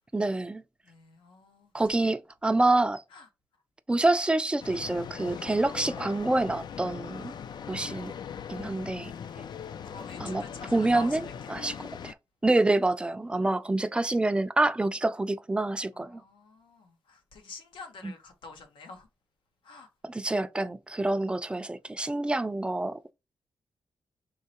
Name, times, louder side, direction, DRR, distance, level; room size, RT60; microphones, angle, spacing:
voice 1, 0.1-0.6 1.7-3.0 3.9-7.4 7.7-8.1 8.5-9.1 10.2-10.4 10.7-12.1 12.4-16.2 18.0-18.1 20.0-23.1, right 2 dB, 10° right, 0.4 m, -27 dB
voice 2, 0.8-1.7 2.0-2.1 3.1-3.3 9.3-9.5 9.8-11.9 15.9-19.1 19.6-19.9, left 3 dB, 90° left, 1.1 m, -47 dB
sound 1, 4.6-12.1, left 7 dB, 60° left, 0.4 m, -40 dB
4.5 x 3.2 x 2.9 m
cardioid pair, 95°, 8 cm